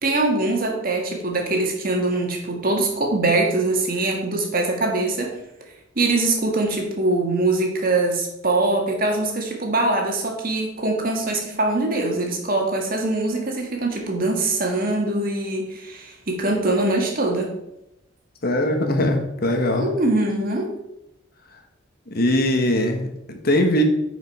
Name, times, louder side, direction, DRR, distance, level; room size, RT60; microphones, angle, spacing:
voice 1, 0.0-5.3 6.0-17.5 19.8-20.7, right 2 dB, 45° right, 1 dB, 1.8 m, -23 dB
voice 2, 18.4-19.9 22.1-23.8, left 1 dB, 50° left, 5 dB, 1.3 m, -21 dB
9.7 x 5.2 x 4.9 m, 0.87 s
head